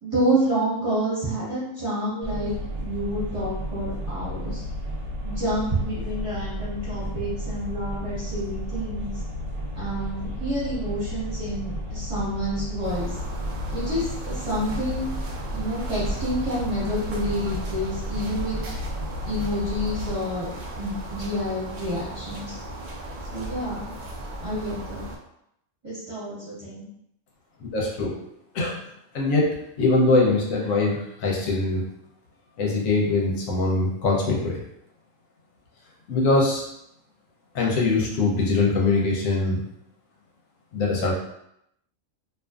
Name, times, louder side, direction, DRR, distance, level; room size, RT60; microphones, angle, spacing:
voice 1, 0.0-4.6 5.2-9.1 9.8-13.2 13.7-15.1 15.5-18.6 19.3-20.5 20.8-22.6 23.3-23.8 24.4-25.0 25.8-26.9, equal, 25° right, -11 dB, 1.2 m, -28 dB
sound 1, 2.2-20.2, equal, 60° right, 1.0 m, -33 dB
sound 2, 12.8-25.2, right 1 dB, 85° right, 0.4 m, -36 dB
voice 2, 27.6-28.2 28.5-28.8 29.1-29.5 29.8-31.8 32.6-34.6 36.1-36.6 37.5-39.6 40.7-41.1, left 3 dB, 80° left, -2 dB, 1.0 m, -22 dB
2.5 x 2.4 x 2.3 m, 0.77 s
omnidirectional pair, 1.4 m